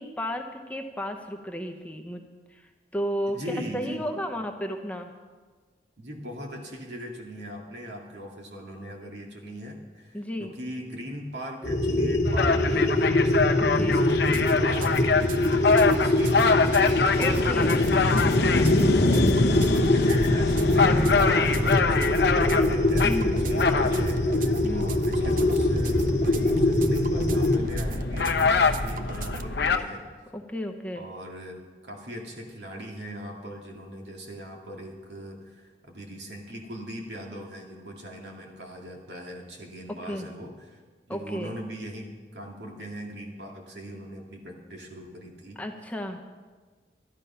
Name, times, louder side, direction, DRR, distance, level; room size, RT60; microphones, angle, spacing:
voice 1, 0.0-2.2 2.5-5.1 10.1-10.5 13.8-14.0 17.2-17.9 23.0-23.4 24.6-25.0 30.3-31.0 39.9-40.3 41.1-41.5 45.6-46.2, equal, 10° left, 4 dB, 0.8 m, -33 dB
voice 2, 3.3-4.1 6.0-16.7 18.9-30.0 31.0-40.8 41.1-45.6, equal, 75° right, 1 dB, 2.3 m, -40 dB
sound 1, 11.6-27.6, left 1 dB, 40° left, 1.2 m, -24 dB
sound 2, 12.3-29.8, left 4 dB, 75° left, 0.8 m, -25 dB
sound 3, 14.1-29.5, right 3 dB, 50° right, 0.6 m, -39 dB
12.0 x 11.5 x 5.7 m, 1.4 s
head